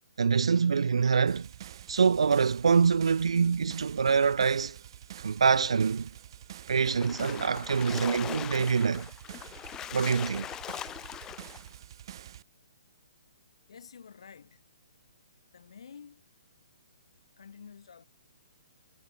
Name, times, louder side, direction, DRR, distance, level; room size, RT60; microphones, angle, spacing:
voice 1, 0.2-1.5 1.9-4.8 5.2-6.1 6.7-9.1 9.9-10.5, right 5 dB, 80° right, 0.4 m, -25 dB
sound 1, 1.3-12.4, right 11 dB, 50° right, 0.8 m, -47 dB
Splash splatter, 6.8-11.7, left 11 dB, 15° left, 0.7 m, -41 dB
voice 2, 13.7-14.6 15.5-16.2 17.4-18.0, left 6 dB, 70° left, 3.1 m, -50 dB
hypercardioid pair, 135°, 3 cm